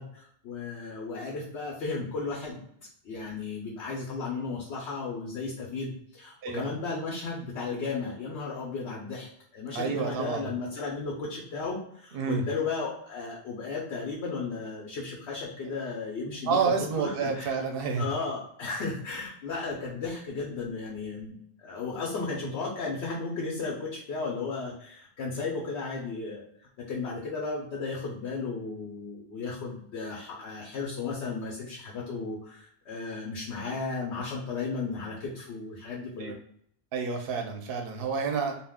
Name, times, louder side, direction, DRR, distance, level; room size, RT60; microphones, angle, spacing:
voice 1, 0.0-2.6 3.0-17.5 18.0-21.3 21.6-26.4 26.9-36.3, left 4 dB, 80° left, -3 dB, 1.0 m, -34 dB
voice 2, 9.7-10.5 12.1-12.4 16.5-18.1 36.2-36.3 36.9-38.6, right 5 dB, 65° right, 3 dB, 0.8 m, -29 dB
2.4 x 2.3 x 3.4 m, 0.68 s
omnidirectional pair, 1.1 m